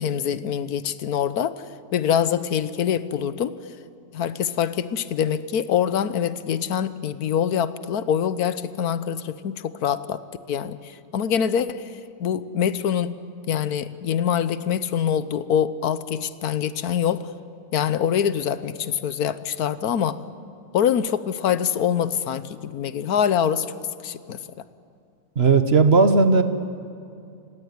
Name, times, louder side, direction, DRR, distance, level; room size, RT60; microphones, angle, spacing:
voice 1, 0.0-3.5 4.1-10.2 10.5-11.9 12.2-13.2 13.5-17.3 17.7-20.2 20.7-23.7 24.0-24.4, left 8 dB, 80° left, 14 dB, 1.4 m, -24 dB
voice 2, 25.4-26.4, right 4 dB, 45° right, 9 dB, 1.3 m, -16 dB
29.0 x 16.5 x 9.5 m, 2.5 s
omnidirectional pair, 1.6 m